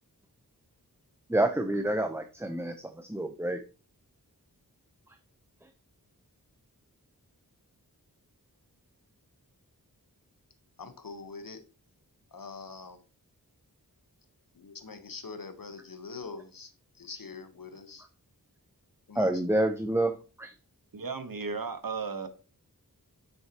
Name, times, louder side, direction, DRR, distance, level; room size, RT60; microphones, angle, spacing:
voice 1, 1.3-3.6 5.1-5.2 5.6-5.7 19.1-20.5, right 1 dB, 5° right, 0.7 m, -28 dB
voice 2, 10.8-11.6 12.3-13.0 14.5-18.1 19.1-19.3, left 4 dB, 65° left, 1.1 m, -44 dB
voice 3, 20.9-22.3, right 4 dB, 65° right, 1.2 m, -35 dB
7.9 x 6.3 x 2.9 m
wide cardioid pair, 55°, 37 cm